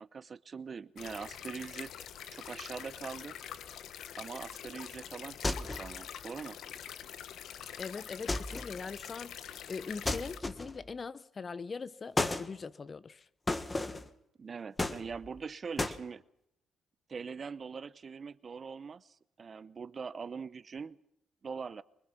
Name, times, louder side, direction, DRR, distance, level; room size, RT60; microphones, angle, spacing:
voice 1, 0.0-1.9 2.3-3.4 4.2-6.6 14.4-16.2 17.1-21.0 21.4-21.8, right 5 dB, 40° right, 0.7 m, -42 dB
sound 1, 1.0-10.4, left 9 dB, 75° left, 1.0 m, -45 dB
sound 2, 5.4-6.0 8.3-8.8 10.0-10.9 12.2-12.5 13.5-14.1 14.8-15.4 15.8-16.0, left 2 dB, 20° left, 1.4 m, -33 dB
voice 2, 7.8-13.3, left 5 dB, 35° left, 0.8 m, -42 dB
24.5 x 20.5 x 6.0 m
cardioid pair, 90°, 0 cm